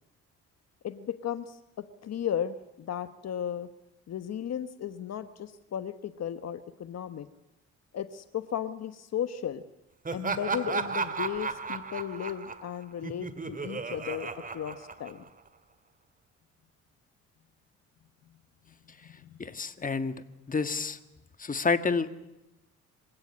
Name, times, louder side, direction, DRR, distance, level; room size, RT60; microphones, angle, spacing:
voice 1, 0.8-3.7 4.1-7.3 7.9-9.6 10.1-15.2 19.0-19.4, left 9 dB, 60° left, 11 dB, 1.2 m, -35 dB
Laughter, 10.0-15.5, right 5 dB, 25° right, 2.3 m, -34 dB
voice 2, 19.4-21.0 21.4-22.1, left 4 dB, 25° left, 11 dB, 1.7 m, -29 dB
26.0 x 16.5 x 9.8 m, 0.95 s
cardioid pair, 90°, 30 cm